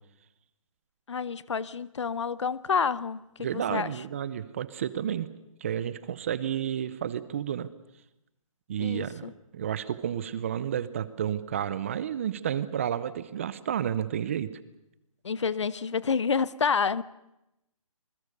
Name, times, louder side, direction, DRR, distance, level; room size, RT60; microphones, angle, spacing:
voice 1, 1.1-3.2 3.5-3.9 8.8-9.3 15.2-17.0, left 6 dB, 55° left, 0.8 m, -28 dB
voice 2, 3.4-5.3 5.6-7.7 8.7-9.3 9.5-14.5, right 9 dB, 25° right, 0.7 m, -31 dB
27.0 x 21.0 x 6.8 m
hypercardioid pair, 165°, 18 cm